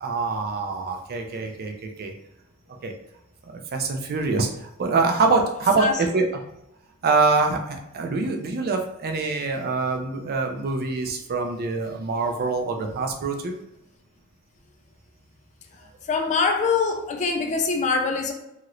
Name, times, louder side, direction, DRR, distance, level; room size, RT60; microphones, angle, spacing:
voice 1, 0.0-2.1 2.8-2.9 3.4-6.3 7.0-13.5, right 3 dB, 45° right, 4 dB, 0.4 m, -25 dB
voice 2, 16.1-18.3, left 4 dB, 30° left, 4 dB, 0.3 m, -23 dB
2.9 x 2.9 x 2.5 m, 0.85 s
head